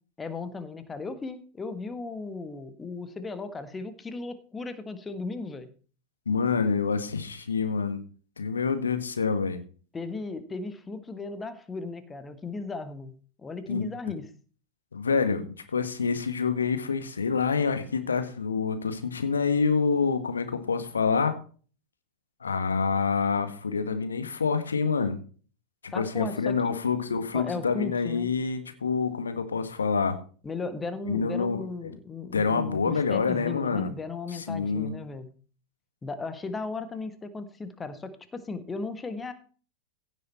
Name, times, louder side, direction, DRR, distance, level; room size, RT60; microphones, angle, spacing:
voice 1, 0.2-5.7 9.9-14.3 25.9-26.7 27.3-28.3 30.4-35.3 36.0-39.3, left 4 dB, 15° left, 11 dB, 1.5 m, -36 dB
voice 2, 6.2-8.0 8.4-9.6 13.7-13.9 14.9-15.4 15.7-21.3 22.4-25.2 25.9-30.1 31.1-31.6 32.3-33.9 34.3-34.9, left 5 dB, 75° left, 9 dB, 1.7 m, -27 dB
16.0 x 7.6 x 4.3 m, 0.40 s
figure-of-eight pair, 90°, 0 cm